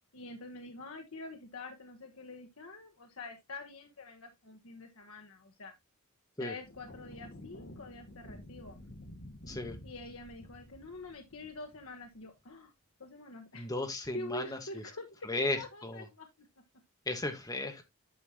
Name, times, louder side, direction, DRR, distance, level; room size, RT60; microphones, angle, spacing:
voice 1, 0.1-5.7 6.4-8.8 9.8-12.7 13.0-13.7 14.1-16.3, left 2 dB, 75° left, 1.3 m, -46 dB
sound 1, 6.6-12.3, left 1 dB, 55° left, 1.9 m, -51 dB
voice 2, 13.5-14.6 15.3-16.0 17.1-17.8, left 2 dB, 15° left, 1.4 m, -35 dB
10.0 x 5.7 x 2.9 m
head